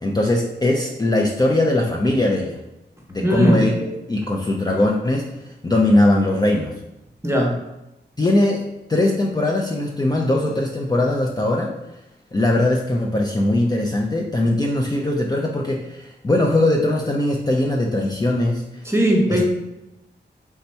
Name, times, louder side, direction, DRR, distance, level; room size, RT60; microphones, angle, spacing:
voice 1, 0.0-2.6 3.1-6.7 8.2-8.6 8.9-11.7 12.3-18.6 19.3-19.4, left 1 dB, 20° left, -1 dB, 0.4 m, -20 dB
voice 2, 3.2-3.6 7.2-7.5 18.8-19.4, equal, 15° right, 0 dB, 0.9 m, -18 dB
3.4 x 2.8 x 4.3 m, 0.94 s
wide cardioid pair, 100°, 19 cm